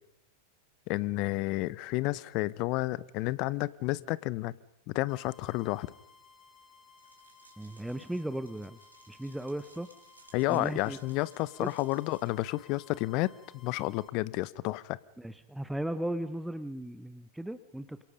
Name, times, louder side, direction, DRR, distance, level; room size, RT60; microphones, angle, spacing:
voice 1, 0.9-4.5 4.9-5.9 10.3-15.0, left 20 dB, 45° left, 20 dB, 0.8 m, -31 dB
sound 1, 5.1-14.1, left 4 dB, 20° left, 5.1 m, -59 dB
sound 2, 7.0-12.3, right 3 dB, 90° right, 4.3 m, -61 dB
voice 2, 7.6-8.8 9.1-9.9 10.5-11.0 11.6-11.7 15.2-18.0, right 1 dB, 5° right, 12 dB, 0.9 m, -36 dB
28.5 x 26.5 x 5.2 m, 0.88 s
figure-of-eight pair, 90°, 0 cm